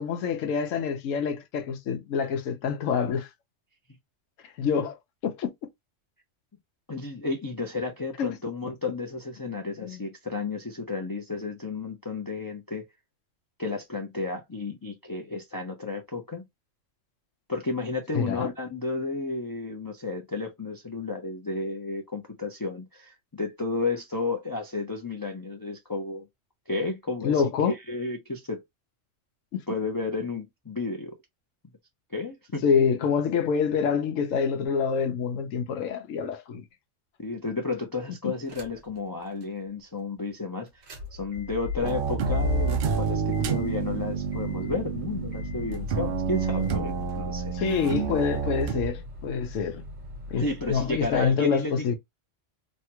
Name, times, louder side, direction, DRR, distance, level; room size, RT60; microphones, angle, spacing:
voice 1, 0.0-3.3 4.4-5.0 5.2-5.5 8.2-8.4 9.8-10.0 18.1-18.5 27.2-27.7 29.5-29.6 32.6-36.6 47.5-49.8 50.3-51.9, left 6 dB, 85° left, 1.1 m, -26 dB
voice 2, 6.9-12.9 13.6-16.4 17.5-26.2 26.7-28.6 29.7-31.2 32.1-32.6 37.2-40.8 41.1-47.5 50.4-51.9, left 3 dB, 30° left, 0.4 m, -32 dB
sound 1, 38.5-39.0 39.4-39.5 40.7-51.3, left 6 dB, 80° right, 1.4 m, -36 dB
sound 2, 41.8-48.9, right 8 dB, 60° right, 0.6 m, -29 dB
3.1 x 2.2 x 2.9 m
omnidirectional pair, 1.3 m